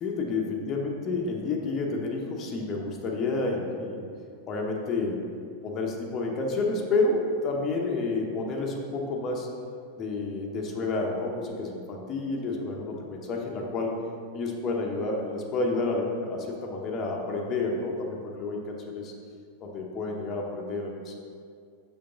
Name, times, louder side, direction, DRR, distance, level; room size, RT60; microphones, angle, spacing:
voice 1, 0.0-4.1 4.5-5.3 5.6-9.5 10.0-14.0 14.3-19.1 19.6-21.2, left 3 dB, 30° left, 0 dB, 1.0 m, -30 dB
6.8 x 6.3 x 3.9 m, 2.2 s
figure-of-eight pair, 90°, 0 cm